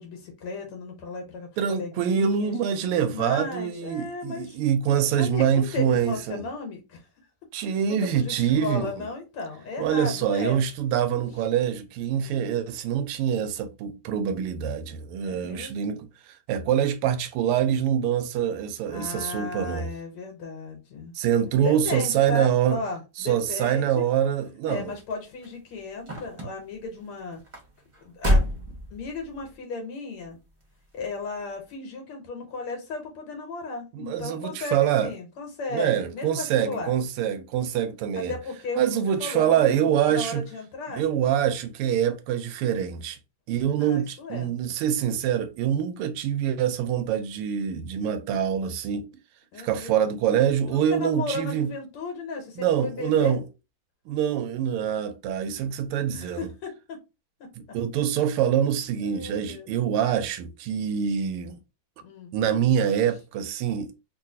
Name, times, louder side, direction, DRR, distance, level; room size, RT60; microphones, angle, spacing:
voice 1, 0.0-2.5 3.1-4.6 5.2-7.1 7.9-10.6 12.1-12.4 15.2-15.9 18.9-21.1 21.6-24.1 24.7-27.4 28.0-28.5 28.9-30.4 30.9-36.9 38.2-41.0 43.7-44.5 49.5-50.4 50.7-53.4 56.1-57.0 59.0-59.7 62.0-62.3, left 3 dB, 80° left, 1.8 m, -35 dB
voice 2, 1.6-6.4 7.5-8.9 9.8-16.1 16.5-19.9 21.1-22.8 23.2-24.9 33.9-35.1 35.7-38.3 38.8-40.4 40.9-43.2 43.5-49.0 49.6-51.7 52.6-53.4 54.1-56.5 57.6-61.6 62.3-63.9, right 9 dB, 90° right, 1.5 m, -25 dB
sound 1, 24.7-29.5 30.2-30.6 31.0-31.1, equal, 50° right, 0.3 m, -28 dB
3.8 x 2.4 x 2.7 m
omnidirectional pair, 2.4 m